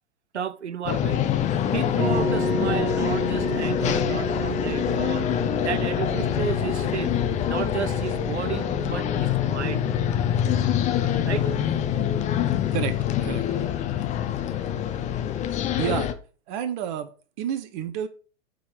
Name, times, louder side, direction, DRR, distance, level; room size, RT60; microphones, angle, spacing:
voice 1, 0.3-1.2 1.7-5.3 5.6-10.1 11.3-11.5, right 8 dB, 85° right, 0.5 m, -32 dB
sound 1, 0.9-16.1, left 10 dB, 20° left, 0.6 m, -25 dB
sound 2, 2.0-16.1, right 1 dB, 65° right, 1.5 m, -34 dB
voice 2, 15.8-16.1 16.5-17.1 17.4-18.1, right 9 dB, 40° right, 0.9 m, -29 dB
8.7 x 3.8 x 4.9 m
figure-of-eight pair, 100°, 34 cm